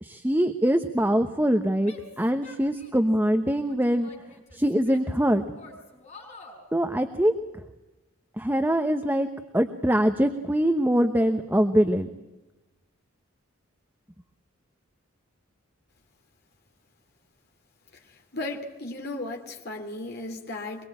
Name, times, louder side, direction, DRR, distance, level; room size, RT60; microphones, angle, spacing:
voice 1, 0.0-4.1 4.5-5.4 6.7-7.3 8.4-9.3 9.5-12.1, equal, 10° right, 7 dB, 1.0 m, -23 dB
Female speech woman speaking / Yell, 1.8-3.2 3.6-5.2 5.5-6.6, left 3 dB, 30° left, 6.2 m, -48 dB
voice 2, 18.1-20.9, left 2 dB, 50° left, 2 dB, 2.8 m, -35 dB
24.0 x 22.5 x 8.9 m, 1.0 s
head